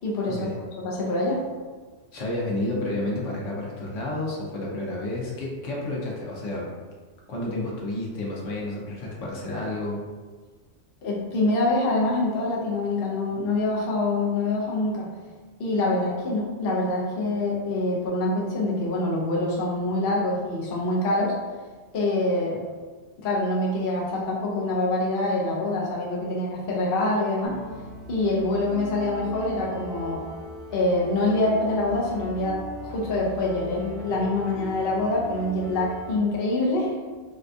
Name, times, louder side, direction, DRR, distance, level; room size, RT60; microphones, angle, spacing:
voice 1, 0.0-0.5 0.8-1.4 11.0-15.1 15.6-21.3 21.9-22.6 23.2-27.6 28.1-30.2 30.7-36.9, left 2 dB, 55° left, -4 dB, 0.8 m, -25 dB
voice 2, 2.1-6.7 7.3-10.0, left 2 dB, 75° left, -3 dB, 1.1 m, -30 dB
sound 1, 27.4-36.2, right 1 dB, 70° right, 1.3 m, -39 dB
4.1 x 2.3 x 2.5 m, 1.4 s
omnidirectional pair, 1.3 m